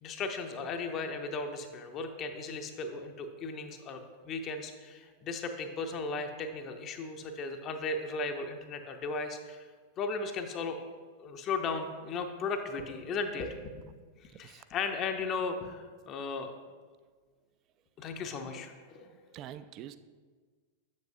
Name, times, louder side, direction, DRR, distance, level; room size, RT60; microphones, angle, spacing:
voice 1, 0.0-9.7 10.0-10.8 11.2-13.7 14.2-16.5 18.0-19.1, left 4 dB, 35° left, 6 dB, 0.6 m, -36 dB
voice 2, 14.3-14.6 19.0-20.0, right 11 dB, 35° right, 12 dB, 0.3 m, -47 dB
7.5 x 7.4 x 2.6 m, 1.5 s
figure-of-eight pair, 90°, 0 cm